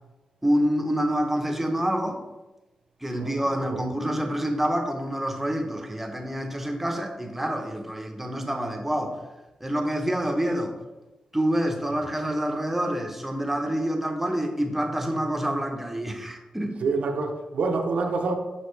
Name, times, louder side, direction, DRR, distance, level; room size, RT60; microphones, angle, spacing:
voice 1, 0.4-2.2 3.0-9.2 9.6-10.8 11.3-16.8, equal, 10° right, 4 dB, 0.8 m, -27 dB
voice 2, 3.2-3.8 16.8-18.3, right 3 dB, 70° right, 4 dB, 0.7 m, -27 dB
6.4 x 5.9 x 3.2 m, 1.1 s
wide cardioid pair, 115°, 2 cm